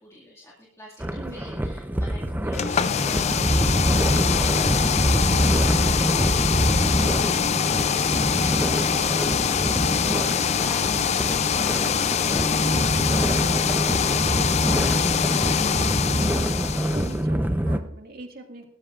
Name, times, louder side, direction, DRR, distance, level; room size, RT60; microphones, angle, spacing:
voice 1, 0.0-16.3, left 1 dB, 15° left, -5 dB, 2.1 m, -46 dB
sound 1, 1.0-17.8, equal, 10° right, 0.6 m, -25 dB
voice 2, 1.2-1.5 16.2-16.6 16.8-18.7, right 2 dB, 50° right, 4 dB, 2.0 m, -42 dB
sound 2, 2.5-17.2, left 7 dB, 35° left, 0.4 m, -24 dB
sound 3, 9.4-15.1, left 1 dB, 30° right, 5.0 m, -42 dB
21.0 x 13.0 x 2.5 m, 0.71 s
head